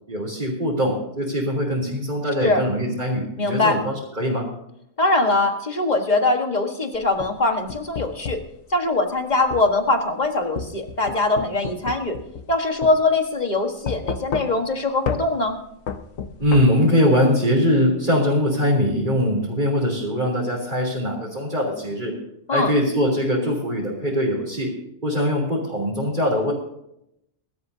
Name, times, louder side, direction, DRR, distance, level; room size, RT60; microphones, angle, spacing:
voice 1, 0.1-4.5 16.4-22.1 22.5-24.7 25.0-26.5, equal, 35° right, -5 dB, 3.6 m, -22 dB
voice 2, 3.4-3.8 5.0-8.4 8.7-12.2 12.5-15.6 22.5-22.7, left 2 dB, 35° left, 4 dB, 1.6 m, -22 dB
sound 1, 6.9-8.5 9.5-9.7 10.6-12.5 12.8-13.0 13.9-14.7 15.1-15.2 15.9-16.6, left 5 dB, 75° left, 1.4 m, -30 dB
22.5 x 13.0 x 2.8 m, 0.79 s
omnidirectional pair, 1.4 m